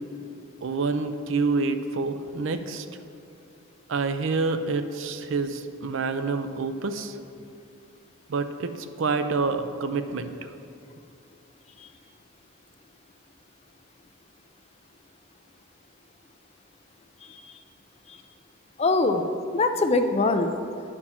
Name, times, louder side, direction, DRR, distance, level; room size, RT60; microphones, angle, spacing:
voice 1, 0.6-2.9 3.9-7.2 8.3-8.7 9.0-10.3, right 4 dB, 65° right, 9 dB, 0.4 m, -27 dB
voice 2, 17.2-17.6 18.1-18.2 18.8-19.2 19.5-20.5, left 3 dB, 30° left, 7 dB, 0.4 m, -23 dB
10.0 x 4.4 x 5.7 m, 2.5 s
head